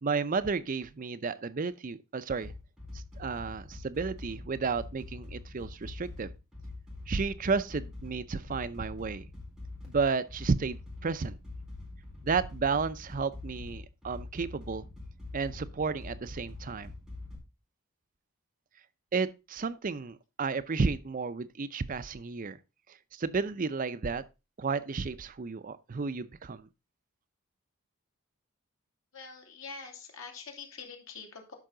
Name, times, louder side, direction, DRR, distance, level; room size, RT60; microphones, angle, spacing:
voice 1, 0.0-2.5 3.2-6.3 7.1-9.2 9.9-11.4 12.2-14.8 15.3-16.9 19.1-22.6 23.1-24.2 24.6-26.7, right 4 dB, 40° right, 0.5 m, -32 dB
sound 1, 2.4-17.4, left 2 dB, 5° right, 4.2 m, -44 dB
voice 2, 29.1-31.5, left 5 dB, 75° left, 2.5 m, -45 dB
12.0 x 5.7 x 3.8 m
head